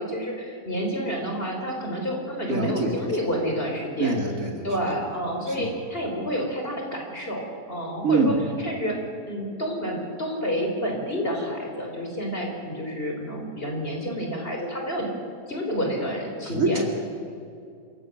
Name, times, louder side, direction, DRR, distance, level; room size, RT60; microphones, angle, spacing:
voice 1, 0.0-4.2 4.6-8.3 8.6-9.0 9.3-15.1 15.5-16.9, equal, 30° left, 1 dB, 3.8 m, -29 dB
voice 2, 2.5-3.1 4.0-4.6 5.5-5.7 8.0-8.4 16.5-16.8, right 3 dB, 50° right, 1 dB, 2.6 m, -24 dB
27.5 x 15.5 x 6.4 m, 2.4 s
omnidirectional pair, 1.8 m